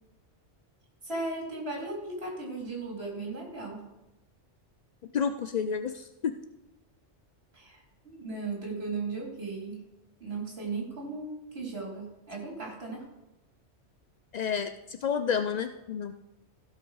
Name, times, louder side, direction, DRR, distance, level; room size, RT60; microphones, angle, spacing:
voice 1, 1.0-3.8 7.5-9.8 10.2-13.1, right 3 dB, 55° right, -2 dB, 3.2 m, -36 dB
voice 2, 5.1-6.4 14.3-16.1, left 7 dB, 65° left, 9 dB, 0.4 m, -30 dB
16.0 x 5.6 x 4.7 m, 0.97 s
omnidirectional pair, 1.2 m